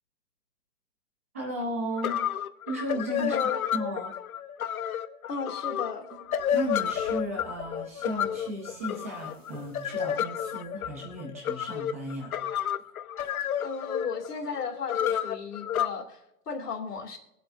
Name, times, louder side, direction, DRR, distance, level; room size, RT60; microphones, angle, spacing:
voice 1, 1.3-2.2 2.7-4.1 6.5-12.3, equal, 10° right, 0 dB, 0.6 m, -35 dB
sound 1, 1.6-1.7 2.0-15.9, left 9 dB, 65° left, 0.8 m, -31 dB
voice 2, 3.2-3.6 5.3-6.1 13.6-17.2, left 5 dB, 80° left, 2 dB, 2.7 m, -34 dB
sound 2, 6.1-11.3, right 1 dB, 80° right, 3.8 m, -52 dB
23.0 x 7.8 x 2.6 m, 0.87 s
hypercardioid pair, 170°, 47 cm